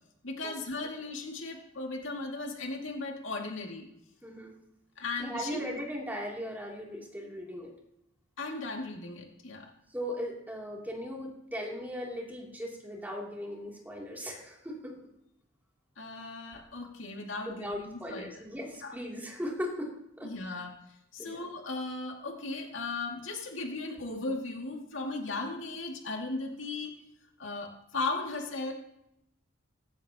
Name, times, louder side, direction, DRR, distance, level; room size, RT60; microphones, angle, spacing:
voice 1, 0.2-3.9 5.0-5.7 8.4-9.7 16.0-18.3 18.8-19.0 20.2-20.7 21.1-26.9 27.4-28.7, left 3 dB, 75° left, 1 dB, 2.3 m, -37 dB
voice 2, 4.2-4.6 5.2-7.7 9.9-14.9 17.4-19.9 20.2-20.3 21.2-21.4, equal, 10° right, -2 dB, 3.0 m, -38 dB
16.5 x 15.0 x 3.0 m, 0.80 s
head